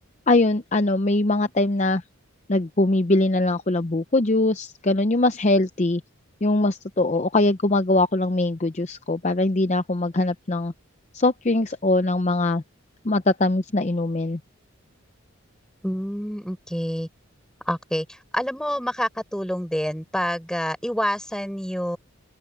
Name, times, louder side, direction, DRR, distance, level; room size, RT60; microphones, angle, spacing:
voice 1, 0.3-2.0 2.5-6.0 6.4-10.7 11.1-12.6 13.0-14.4, left 2 dB, 30° left, 0.6 m, -22 dB
voice 2, 15.8-17.1 17.7-22.0, equal, 5° left, 4.8 m, -27 dB
open air
head